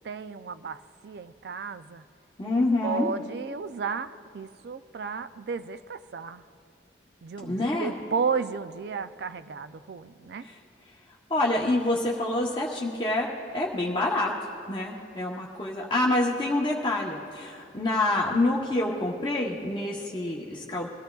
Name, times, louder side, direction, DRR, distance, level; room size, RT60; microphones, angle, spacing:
voice 1, 0.0-2.0 2.5-6.4 7.2-10.5, right 5 dB, 65° right, 11 dB, 0.4 m, -33 dB
voice 2, 2.4-3.2 7.4-7.9 10.4-10.6 11.3-13.3 13.5-14.3 14.7-20.9, left 2 dB, 25° left, -3 dB, 0.8 m, -27 dB
22.0 x 14.0 x 2.3 m, 2.6 s
head